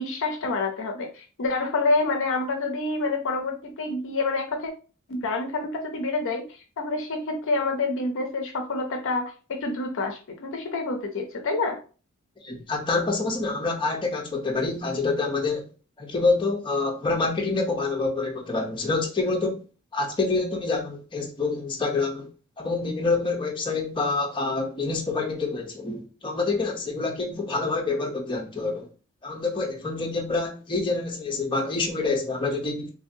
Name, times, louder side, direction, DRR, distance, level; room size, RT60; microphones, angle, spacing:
voice 1, 0.0-4.7 5.1-11.8, left 3 dB, 60° left, 0.5 m, -28 dB
voice 2, 12.4-15.7 16.0-19.6 19.9-22.3 22.6-28.9 29.2-32.9, left 3 dB, 20° left, 0.7 m, -27 dB
3.3 x 2.6 x 2.6 m
head